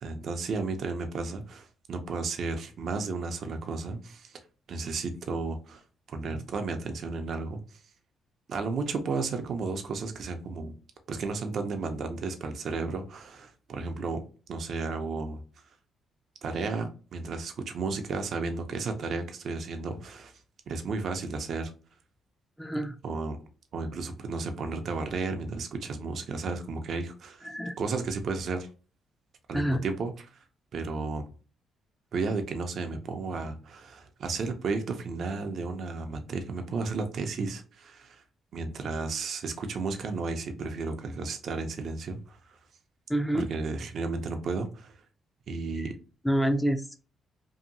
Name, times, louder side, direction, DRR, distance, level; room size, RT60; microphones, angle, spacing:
voice 1, 0.0-4.4 4.7-5.8 6.1-7.6 8.5-10.7 11.1-14.2 14.5-15.4 16.4-20.3 20.7-21.7 23.0-23.4 23.7-27.5 27.8-28.7 29.5-30.4 30.7-31.3 32.1-38.2 38.5-42.6 43.3-45.0 45.5-45.9, right 4 dB, 60° right, 0.5 m, -33 dB
voice 2, 22.6-23.0 27.4-27.8 29.5-29.8 43.1-43.5 45.8-45.9 46.2-47.0, right 1 dB, 5° left, 0.4 m, -27 dB
2.7 x 2.6 x 2.6 m
cardioid pair, 90°, 0 cm